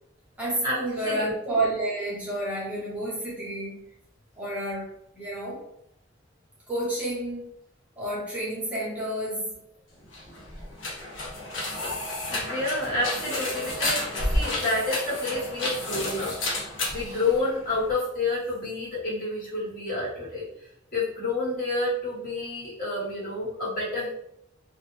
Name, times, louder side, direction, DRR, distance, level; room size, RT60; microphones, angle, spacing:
voice 1, 0.4-3.8 4.4-4.9 5.1-5.6 6.7-7.4 8.0-9.6, right 1 dB, 5° right, -7 dB, 0.6 m, -30 dB
sound 1, 10.0-17.9, left 1 dB, 75° left, 0.7 m, -31 dB
voice 2, 12.3-20.4 20.9-24.1, left 2 dB, 50° left, -8 dB, 1.2 m, -29 dB
2.2 x 2.1 x 3.0 m, 0.76 s
head